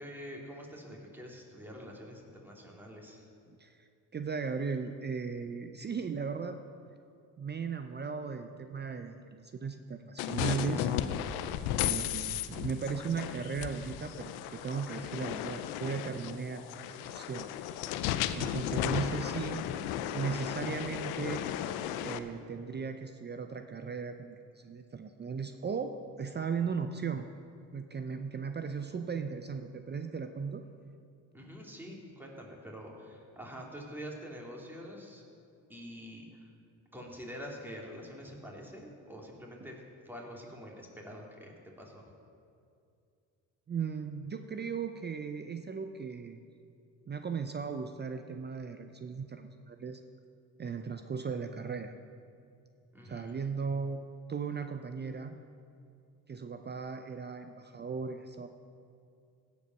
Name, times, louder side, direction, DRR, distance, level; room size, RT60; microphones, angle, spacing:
voice 1, 0.0-3.3 11.7-12.0 31.3-35.2 35.7-36.5 36.9-42.1 52.9-53.4, equal, 5° right, -2 dB, 2.8 m, -46 dB
voice 2, 4.1-6.6 7.4-10.9 11.8-17.5 17.9-18.0 18.3-19.7 20.1-21.5 22.0-27.3 27.7-30.6 43.7-46.4 47.1-50.0 50.6-51.9 53.0-54.0 54.3-55.4 56.3-58.5, right 5 dB, 30° right, 7 dB, 0.6 m, -37 dB
sound 1, 10.2-22.2, left 11 dB, 80° left, 0.6 m, -35 dB
16.0 x 5.4 x 6.0 m, 2.4 s
supercardioid pair, 60°, 37 cm